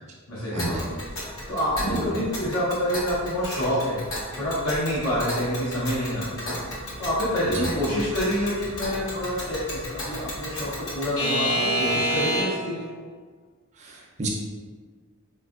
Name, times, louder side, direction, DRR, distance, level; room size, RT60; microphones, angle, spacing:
voice 1, 0.3-12.9, equal, 90° left, -9 dB, 0.9 m, -28 dB
Alarm / Clock, 0.6-12.7, equal, 65° left, 0.9 m, -31 dB
voice 2, 13.8-14.3, right 2 dB, 30° right, -3 dB, 0.5 m, -30 dB
4.3 x 2.4 x 2.4 m, 1.5 s
head